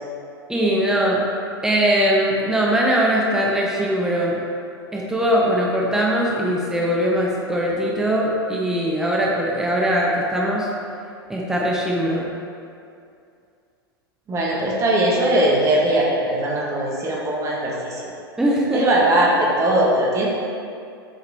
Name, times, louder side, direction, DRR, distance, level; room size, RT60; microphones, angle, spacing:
voice 1, 0.5-1.2 1.6-4.4 4.9-10.7 11.3-12.3 18.4-18.8, equal, 5° right, -3 dB, 0.8 m, -21 dB
voice 2, 14.3-18.1 18.7-20.3, right 1 dB, 20° right, -4 dB, 1.3 m, -20 dB
7.6 x 4.7 x 3.5 m, 2.5 s
figure-of-eight pair, 95°, 13 cm